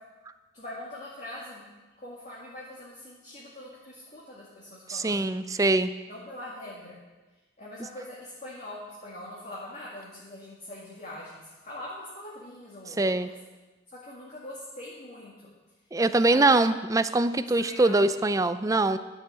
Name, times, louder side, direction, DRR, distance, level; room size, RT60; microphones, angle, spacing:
voice 1, 0.5-1.7 2.0-5.3 6.1-7.0 7.6-13.3 13.9-15.5 16.2-16.5 17.6-18.0, left 1 dB, 40° left, -6 dB, 2.1 m, -42 dB
voice 2, 4.9-5.9 13.0-13.3 15.9-19.0, right 2 dB, 20° right, 12 dB, 0.4 m, -23 dB
11.5 x 6.9 x 7.5 m, 1.2 s
head